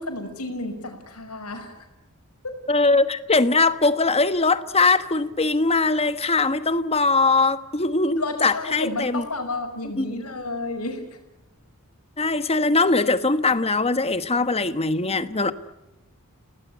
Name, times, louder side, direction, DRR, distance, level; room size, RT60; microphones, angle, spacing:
voice 1, 0.0-1.7 8.2-11.0, left 2 dB, 85° left, 4 dB, 5.6 m, -31 dB
voice 2, 2.7-9.2 10.0-10.1 12.2-15.5, left 3 dB, 25° left, 12 dB, 1.3 m, -21 dB
29.5 x 19.0 x 9.4 m, 0.98 s
head